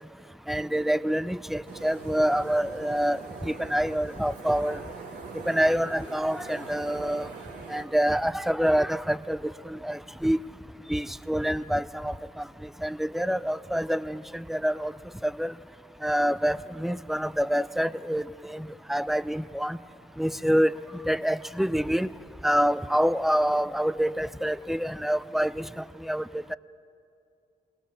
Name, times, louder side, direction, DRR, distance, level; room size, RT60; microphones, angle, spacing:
voice 1, 0.5-4.8 5.5-7.3 7.7-9.4 9.8-10.4 10.9-12.1 12.8-14.9 15.2-15.5 16.0-19.8 20.2-20.8 21.1-22.1 22.4-25.7 26.1-26.2, equal, ahead, 15 dB, 0.6 m, -26 dB
sound 1, 1.7-7.8, right 4 dB, 85° right, 1.7 m, -43 dB
21.5 x 18.5 x 7.3 m, 2.5 s
supercardioid pair, 45°, 17 cm